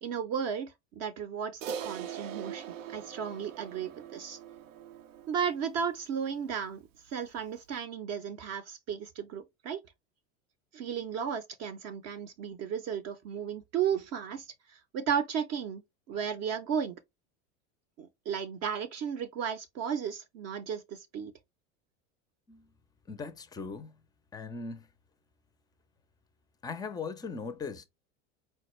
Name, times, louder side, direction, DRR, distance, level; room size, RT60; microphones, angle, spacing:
voice 1, 0.0-4.4 5.3-6.8 7.1-9.8 10.7-14.5 14.9-15.8 16.1-17.0 18.0-21.3, right 7 dB, 45° right, 0.6 m, -34 dB
Crash cymbal, 1.6-6.2, right 8 dB, 85° right, 0.5 m, -42 dB
voice 2, 23.1-24.0 24.3-24.9 26.6-27.8, left 4 dB, 10° left, 0.4 m, -39 dB
4.3 x 2.1 x 3.0 m
hypercardioid pair, 95°, 37 cm